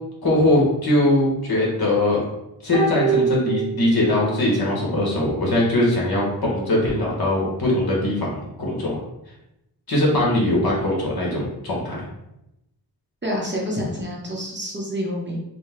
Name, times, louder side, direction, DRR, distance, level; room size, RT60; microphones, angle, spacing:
voice 1, 0.2-2.2 2.6-8.3 8.6-9.0 9.9-12.0, left 1 dB, 60° left, -4 dB, 1.6 m, -21 dB
sound 1, 2.7-4.4 4.7-4.8, right 5 dB, 70° right, 1.4 m, -25 dB
voice 2, 13.2-15.4, equal, 25° right, -3 dB, 0.9 m, -28 dB
4.9 x 2.2 x 4.4 m, 0.85 s
wide cardioid pair, 140°, 42 cm